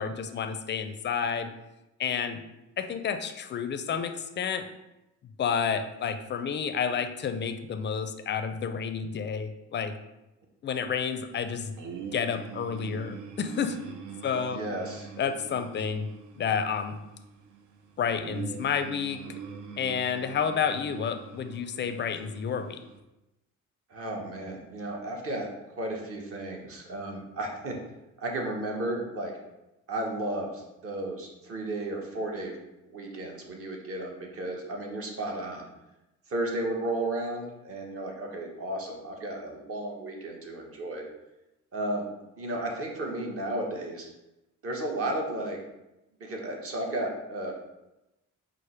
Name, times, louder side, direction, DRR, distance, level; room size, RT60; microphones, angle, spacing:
voice 1, 0.0-1.5 2.0-2.4 2.8-4.7 5.4-9.9 10.6-11.7 12.1-13.8 14.2-14.6 15.2-16.1 16.3-17.0 18.0-19.2 19.8-22.8, left 7 dB, 40° left, 9 dB, 0.4 m, -30 dB
sound 1, 11.8-23.0, right 6 dB, 80° right, 0.6 m, -43 dB
voice 2, 14.5-15.1 23.9-27.7 28.2-29.3 29.9-32.5 32.9-35.7 36.3-41.0 41.7-42.0 42.4-44.1 44.6-45.6 46.2-47.5, right 1 dB, 50° right, 0 dB, 1.0 m, -33 dB
4.9 x 2.0 x 4.4 m, 0.96 s
cardioid pair, 90°, 30 cm